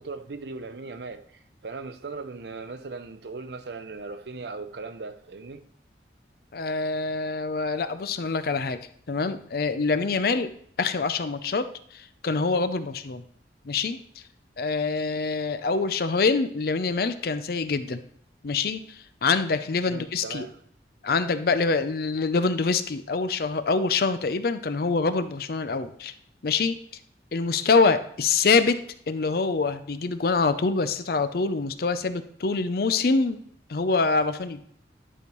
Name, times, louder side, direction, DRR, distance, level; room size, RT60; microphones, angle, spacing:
voice 1, 0.0-5.7 19.9-20.6, right 3 dB, 65° right, 0.6 m, -38 dB
voice 2, 6.5-8.8 9.1-10.5 10.8-11.7 11.9-13.2 13.7-14.0 14.6-18.0 18.4-18.8 19.2-20.5 21.0-26.1 26.4-26.8 27.3-28.8 29.1-33.4 33.7-34.6, left 4 dB, 55° left, 0.5 m, -25 dB
11.0 x 5.3 x 3.1 m
head